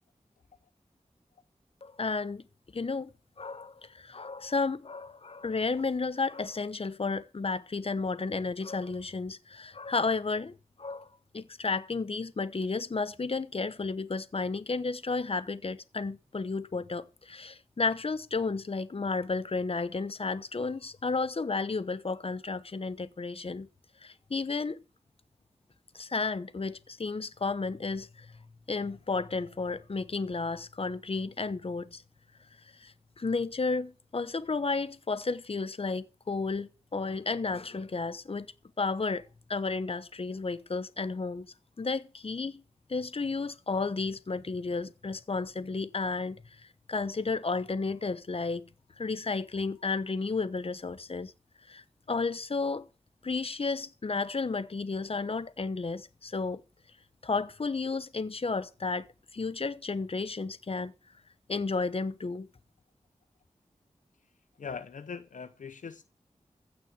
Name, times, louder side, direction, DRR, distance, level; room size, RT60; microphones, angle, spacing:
voice 1, 1.8-2.4 2.7-3.1 3.4-11.1 11.3-23.7 24.0-24.8 25.9-28.3 28.7-32.0 32.8-38.5 38.8-39.2 39.5-42.6 42.9-46.4 46.9-48.6 49.0-51.3 51.7-52.9 53.2-56.6 57.2-59.1 59.3-60.9 61.5-62.5, left 4 dB, 50° left, 1.0 m, -32 dB
voice 2, 64.6-66.0, left 6 dB, 85° left, 0.7 m, -41 dB
15.5 x 6.3 x 6.8 m
wide cardioid pair, 85°, 13 cm